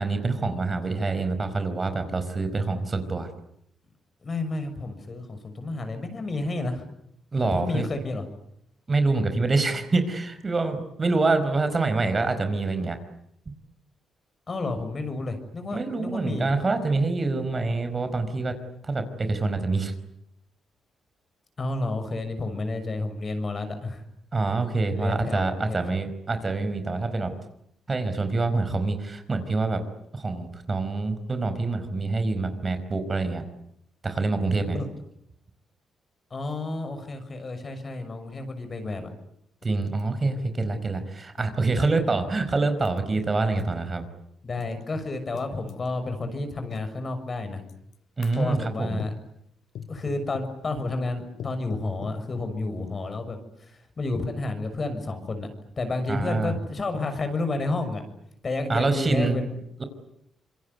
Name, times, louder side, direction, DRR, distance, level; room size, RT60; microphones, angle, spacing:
voice 1, 0.0-3.3 7.3-7.9 8.9-13.0 15.7-18.6 18.8-19.9 24.3-27.3 27.9-29.8 30.1-33.4 34.0-34.8 39.6-44.0 48.2-49.0 56.1-56.6 58.7-59.4 59.8-59.9, right 3 dB, 30° right, 9 dB, 4.8 m, -26 dB
voice 2, 4.2-6.8 7.4-8.3 14.5-16.5 21.6-24.0 24.9-25.8 34.7-34.9 36.3-39.1 41.8-41.9 44.4-47.6 48.3-49.1 49.9-55.5 55.8-58.0 58.4-59.5, left 2 dB, 40° left, 8 dB, 6.4 m, -31 dB
sound 1, 39.6-39.7 40.0-40.1 40.9-42.1 42.8-43.8 44.6-45.9 46.7-46.9 47.7-47.9 48.2-48.5 49.0-49.3 49.7-50.6 51.4-52.3, left 8 dB, 75° left, 1.7 m, -41 dB
27.0 x 23.0 x 9.6 m, 0.74 s
cardioid pair, 85°, 0 cm